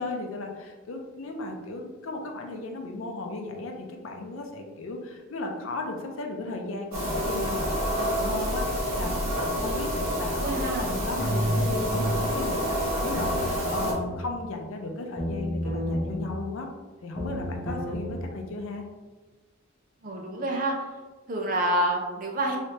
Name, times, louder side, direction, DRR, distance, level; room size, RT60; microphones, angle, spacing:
voice 1, 0.0-16.7 17.0-18.8, left 2 dB, 75° left, 3 dB, 0.5 m, -35 dB
sound 1, 6.9-13.9, equal, 85° right, 1.4 m, -28 dB
voice 2, 10.3-10.9 20.0-20.8 21.3-22.6, right 1 dB, 40° right, 2 dB, 0.5 m, -27 dB
sound 2, 11.2-12.2 13.2-14.2 15.2-16.2 17.2-18.1, equal, 10° left, 0.7 m, -30 dB
3.2 x 3.2 x 2.8 m, 1.3 s
head